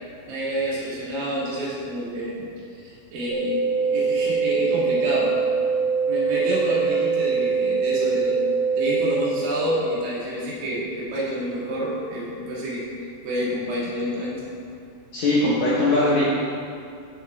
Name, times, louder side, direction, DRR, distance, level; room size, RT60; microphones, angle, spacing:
voice 1, 0.3-2.5 2.7-5.3 6.1-8.4 8.7-14.4, right 1 dB, 75° right, -6 dB, 3.5 m, -28 dB
sound 1, 3.3-9.3, right 5 dB, 55° right, 2.4 m, -23 dB
voice 2, 15.1-16.2, left 2 dB, 70° left, -7 dB, 1.8 m, -20 dB
11.5 x 5.9 x 3.3 m, 2.5 s
omnidirectional pair, 4.4 m